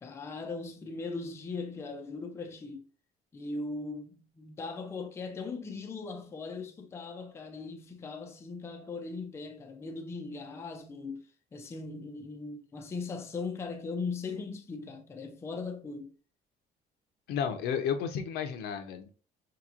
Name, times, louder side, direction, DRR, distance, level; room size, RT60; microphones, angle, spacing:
voice 1, 0.0-2.9 3.3-11.3 11.5-16.1, left 4 dB, 15° left, 0.4 m, -39 dB
voice 2, 17.3-19.1, left 7 dB, 85° left, 0.7 m, -32 dB
4.3 x 3.0 x 2.4 m
cardioid pair, 170°, 16 cm